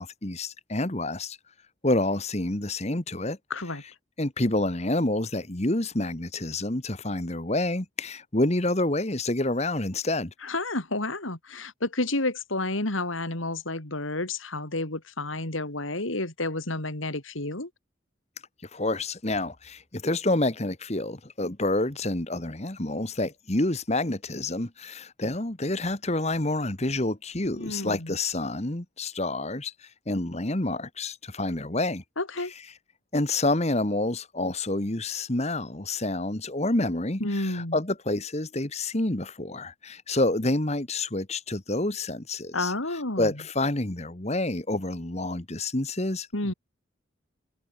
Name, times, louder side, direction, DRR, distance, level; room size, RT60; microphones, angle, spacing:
voice 1, 0.0-1.4 1.8-3.4 4.2-10.3 18.7-32.0 33.1-42.7 43.2-46.5, left 2 dB, 35° left, 1.7 m, -28 dB
voice 2, 3.5-3.8 10.4-17.7 27.5-28.2 32.2-32.5 37.2-37.8 42.5-43.3 46.3-46.5, left 2 dB, 80° left, 4.0 m, -30 dB
head